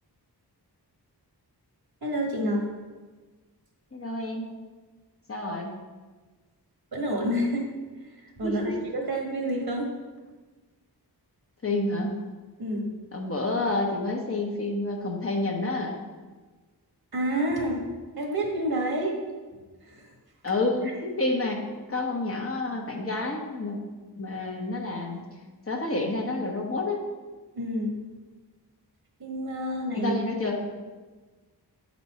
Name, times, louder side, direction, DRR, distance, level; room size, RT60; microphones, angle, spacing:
voice 1, 2.0-2.7 6.9-7.7 8.4-9.9 12.6-12.9 17.1-17.8 18.1-19.2 19.9-20.1 27.5-27.9 29.2-30.5, equal, 65° right, 0 dB, 1.6 m, -28 dB
voice 2, 3.9-4.5 5.3-5.8 8.4-8.9 11.6-12.2 13.1-16.0 20.4-21.6 21.9-23.8 24.2-25.2 25.7-27.0 29.9-30.6, left 2 dB, 35° left, 0 dB, 1.0 m, -29 dB
8.4 x 4.3 x 4.2 m, 1.3 s
wide cardioid pair, 110°, 40 cm